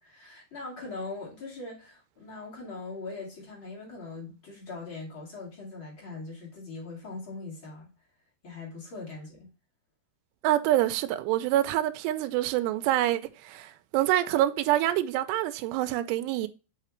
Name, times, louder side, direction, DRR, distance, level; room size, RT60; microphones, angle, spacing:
voice 1, 0.0-7.9 8.4-9.5, left 3 dB, 35° left, 2.6 m, -41 dB
voice 2, 10.4-16.5, right 14 dB, 85° right, 2.7 m, -26 dB
5.8 x 5.4 x 3.0 m
omnidirectional pair, 4.8 m